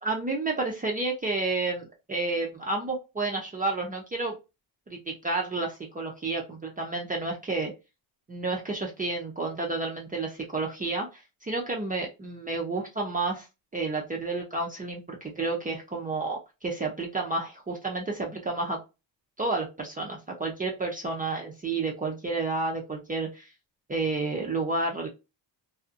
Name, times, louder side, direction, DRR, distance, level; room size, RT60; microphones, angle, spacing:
voice 1, 0.0-4.4 4.9-7.7 8.3-13.5 13.7-18.8 19.4-23.5 23.9-25.1, right 3 dB, 20° right, 0 dB, 0.4 m, -30 dB
2.5 x 2.0 x 2.4 m, 0.26 s
cardioid pair, 125°, 44 cm